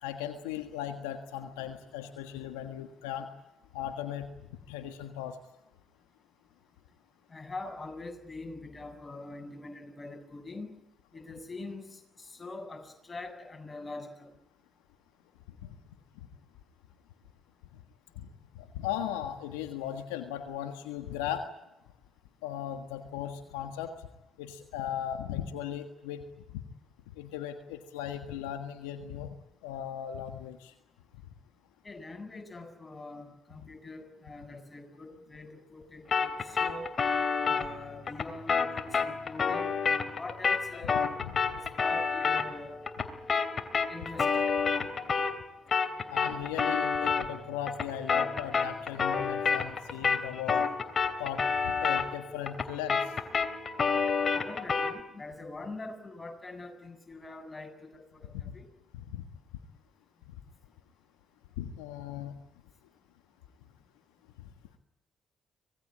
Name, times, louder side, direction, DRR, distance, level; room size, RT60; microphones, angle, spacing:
voice 1, 0.0-3.3 3.7-4.3 4.7-5.4 15.6-15.7 18.1-18.3 18.5-21.5 22.4-23.9 24.4-26.2 26.5-26.6 27.2-29.3 29.6-30.7 41.2-41.3 46.1-50.7 51.2-53.1 58.4-58.5 58.9-59.2 61.6-62.3, left 10 dB, 80° left, 7 dB, 1.5 m, -37 dB
voice 2, 7.3-10.7 11.1-14.3 31.8-36.9 37.4-41.0 41.5-42.8 43.9-44.5 54.3-58.6, left 2 dB, 30° left, 5 dB, 7.8 m, -43 dB
sound 1, 36.1-45.4 45.7-55.0, left 5 dB, 45° left, 2.8 m, -29 dB
26.0 x 20.0 x 8.8 m, 0.91 s
hypercardioid pair, 45°, 0 cm